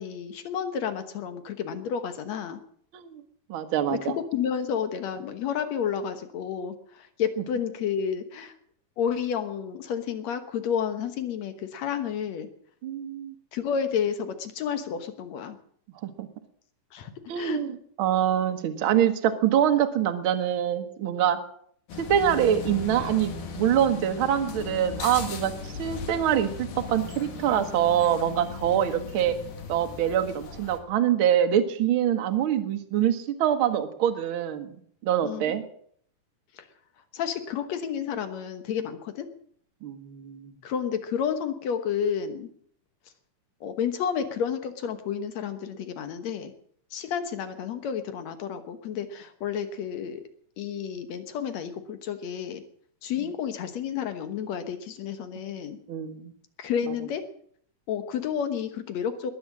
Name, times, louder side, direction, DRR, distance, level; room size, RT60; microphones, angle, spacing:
voice 1, 0.0-2.6 3.9-8.5 9.0-12.5 13.5-15.6 16.9-17.6 35.2-35.5 36.5-36.7 37.1-39.3 40.6-42.5 43.6-46.5 46.9-50.2 50.6-52.6 53.0-55.8 56.6-57.2 57.9-59.3, left 8 dB, 60° left, 10 dB, 2.1 m, -31 dB
voice 2, 3.5-4.1 12.8-13.3 16.0-16.3 17.3-21.4 22.0-25.5 25.8-29.4 29.7-34.7 35.0-35.6 39.8-40.5 55.9-56.3 56.9-57.0, right 10 dB, 60° right, 7 dB, 1.4 m, -25 dB
sound 1, 21.9-30.8, left 5 dB, 75° left, 3.9 m, -38 dB
20.5 x 8.7 x 7.4 m, 0.63 s
omnidirectional pair, 4.2 m